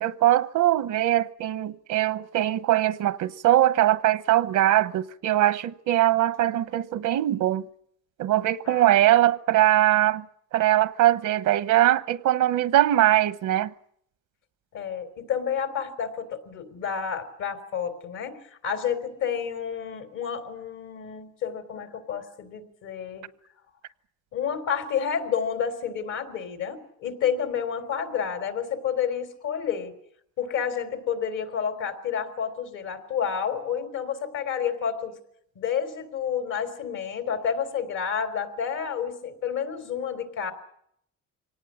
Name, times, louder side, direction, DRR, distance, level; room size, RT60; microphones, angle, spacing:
voice 1, 0.0-7.7 8.2-10.2 10.5-13.7, right 13 dB, 85° right, 0.9 m, -21 dB
voice 2, 14.7-23.3 24.3-29.9 30.4-35.1 35.6-40.5, left 7 dB, 80° left, 3.6 m, -30 dB
24.5 x 18.5 x 8.6 m
cardioid pair, 90°, 30 cm